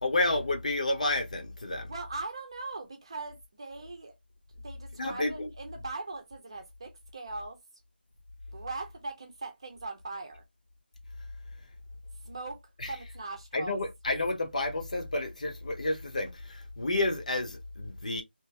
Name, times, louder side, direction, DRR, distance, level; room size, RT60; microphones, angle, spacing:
voice 1, 0.0-1.9 5.0-5.5 13.5-18.2, left 2 dB, 45° left, 0.8 m, -30 dB
voice 2, 1.9-4.1 4.5-7.6 8.5-10.4 12.2-13.8, right 3 dB, 30° right, 0.8 m, -40 dB
2.9 x 2.6 x 3.3 m
figure-of-eight pair, 175°, 6 cm